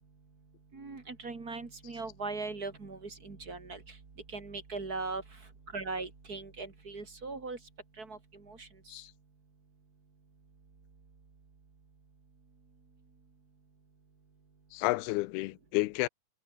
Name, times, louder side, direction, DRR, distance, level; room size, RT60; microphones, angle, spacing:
voice 1, 0.7-3.8 4.3-5.2 5.7-7.6 8.0-8.2 8.5-8.7, right 3 dB, 25° right, 3.1 m, -39 dB
voice 2, 14.7-16.1, left 21 dB, 85° left, 2.6 m, -31 dB
omnidirectional pair, 4.4 m